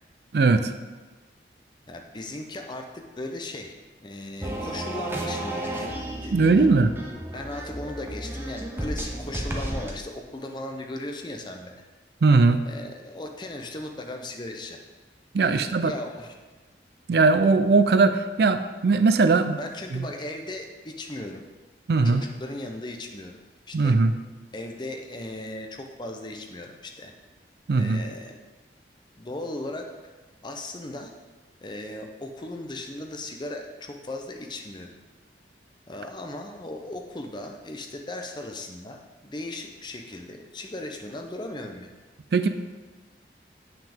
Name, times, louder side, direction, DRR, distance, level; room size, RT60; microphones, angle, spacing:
voice 1, 0.3-0.7 6.3-6.9 12.2-12.6 15.3-15.9 17.1-19.6 19.9-20.0 21.9-22.2 23.7-24.1 27.7-28.0 42.3-42.5, right 3 dB, 65° right, 10 dB, 0.4 m, -19 dB
voice 2, 1.9-3.7 4.0-6.7 7.3-11.8 12.7-14.8 15.3-16.3 19.6-21.4 22.0-23.4 23.7-24.0 24.5-27.1 27.8-28.4 29.2-29.9 30.4-31.1 31.6-34.9 35.9-41.9, left 1 dB, 25° left, 3 dB, 0.6 m, -37 dB
sound 1, 4.4-9.9, right 1 dB, 15° right, 0.7 m, -33 dB
7.6 x 5.8 x 3.5 m, 1.3 s
head